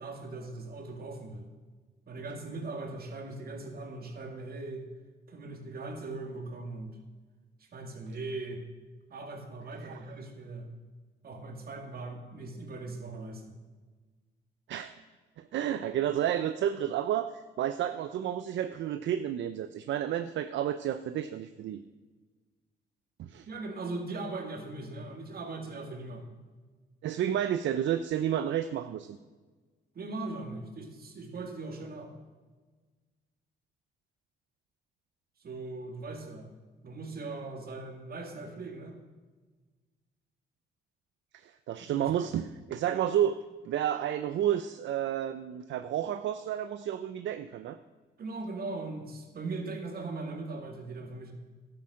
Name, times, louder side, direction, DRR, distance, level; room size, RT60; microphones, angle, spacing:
voice 1, 0.0-1.5 2.1-4.9 5.3-7.0 7.7-8.6 9.1-10.7 11.2-13.6 23.5-26.3 29.9-32.1 35.4-36.5 36.8-39.0 41.8-42.1 48.2-51.3, right 3 dB, 50° right, 4 dB, 2.4 m, -39 dB
voice 2, 15.4-21.8 23.2-23.5 27.0-29.2 41.3-47.8, right 10 dB, 70° right, 11 dB, 0.6 m, -31 dB
12.0 x 8.8 x 6.3 m, 1.4 s
cardioid pair, 90°, 20 cm